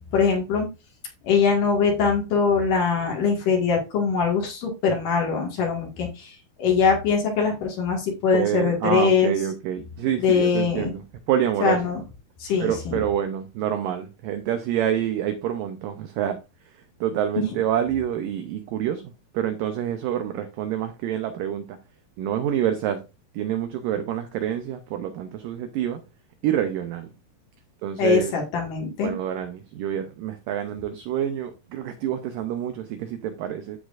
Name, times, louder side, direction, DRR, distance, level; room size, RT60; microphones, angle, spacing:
voice 1, 0.1-0.7 1.2-9.3 10.2-10.9 11.6-12.0 12.4-13.0 17.4-17.5 28.0-29.1, left 5 dB, 60° left, 3.1 m, -22 dB
voice 2, 8.3-11.9 12.6-16.4 17.0-21.8 22.2-23.0 23.3-26.0 26.4-27.1 27.8-28.3 29.0-33.8, right 10 dB, 85° right, 1.9 m, -27 dB
14.0 x 4.8 x 2.5 m
omnidirectional pair, 4.8 m